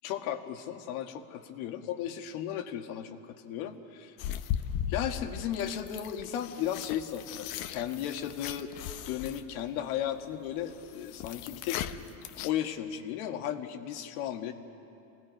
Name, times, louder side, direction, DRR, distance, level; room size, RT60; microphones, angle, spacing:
voice 1, 0.0-4.2 4.9-8.7 9.0-11.9 12.4-14.5, left 10 dB, 75° left, 5 dB, 1.8 m, -35 dB
sound 1, 4.2-12.5, left 10 dB, 55° left, 1.0 m, -38 dB
29.0 x 19.0 x 5.3 m, 2.9 s
supercardioid pair, 140°, 42 cm